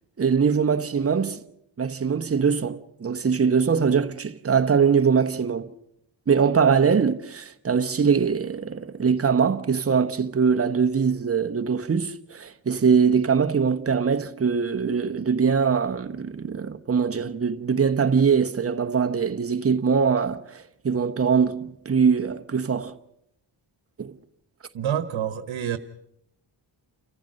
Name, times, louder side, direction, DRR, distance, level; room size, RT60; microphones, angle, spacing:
voice 1, 0.2-1.4 1.8-5.7 6.3-23.0 24.0-24.1, right 6 dB, 30° right, 1.0 m, -22 dB
voice 2, 24.7-25.8, right 9 dB, 75° right, 1.2 m, -27 dB
29.0 x 15.0 x 6.4 m
wide cardioid pair, 115°, 46 cm